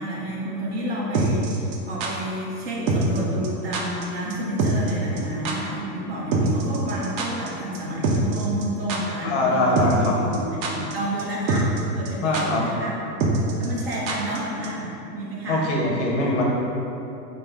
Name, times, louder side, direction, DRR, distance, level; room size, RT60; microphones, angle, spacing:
voice 1, 0.0-13.0 13.6-15.6, right 1 dB, 40° right, -5 dB, 0.5 m, -30 dB
sound 1, 1.1-2.1 2.9-3.2 3.4-3.5 3.7-4.0 4.3-4.4 4.6-4.9 5.2-5.3 5.4-5.5 6.3-7.5 7.7-8.6 8.9-9.0 9.8-10.1 10.3-10.9 11.2-11.3 11.5-11.8 12.0-12.1 12.3-12.4 13.2-14.4 14.6-14.7, right 4 dB, 85° right, 0.6 m, -24 dB
voice 2, 9.2-10.2 12.2-12.6 15.5-16.4, left 2 dB, 45° left, -3 dB, 0.6 m, -22 dB
3.4 x 2.0 x 3.2 m, 2.9 s
supercardioid pair, 170°, 50 cm